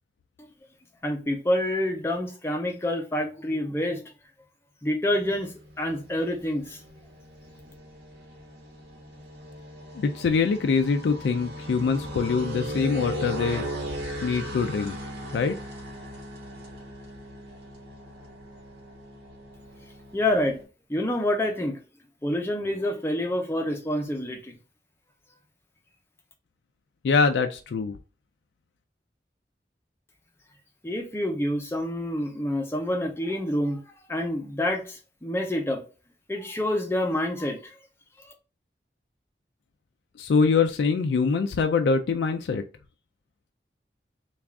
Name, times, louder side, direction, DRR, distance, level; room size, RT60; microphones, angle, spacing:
voice 1, 1.0-4.1 4.8-6.8 20.1-20.6 20.9-21.8 22.2-24.6 30.8-33.8 34.1-35.8 36.3-37.8, left 1 dB, 15° left, 0.6 m, -27 dB
sound 1, 5.1-20.6, equal, 70° right, 1.3 m, -38 dB
voice 2, 10.0-13.6 14.2-15.0 15.3-15.6 27.0-28.0 40.2-42.6, left 5 dB, 85° left, 0.3 m, -24 dB
3.5 x 2.4 x 3.5 m
head